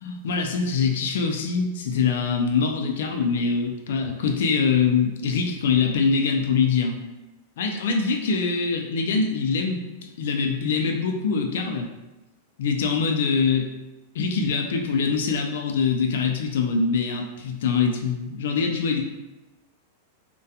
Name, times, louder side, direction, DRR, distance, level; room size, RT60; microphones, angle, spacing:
voice 1, 0.0-7.0 7.6-9.9 10.2-11.9 12.6-13.7 14.1-19.0, left 5 dB, 75° left, 3 dB, 0.3 m, -24 dB
2.3 x 2.2 x 2.7 m, 1.0 s
supercardioid pair, 160°, 0 cm